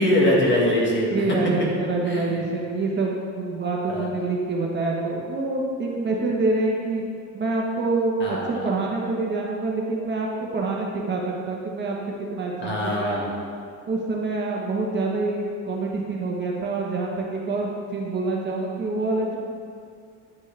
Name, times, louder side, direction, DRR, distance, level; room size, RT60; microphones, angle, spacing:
voice 1, 0.0-1.2 2.0-2.4 3.9-4.1 8.2-8.6 12.6-13.3, left 1 dB, 35° left, -4 dB, 1.7 m, -22 dB
voice 2, 1.1-7.0 7.3-13.2 13.9-19.4, right 3 dB, 35° right, -2 dB, 1.1 m, -26 dB
9.5 x 6.2 x 3.3 m, 2.3 s
cardioid pair, 135°, 32 cm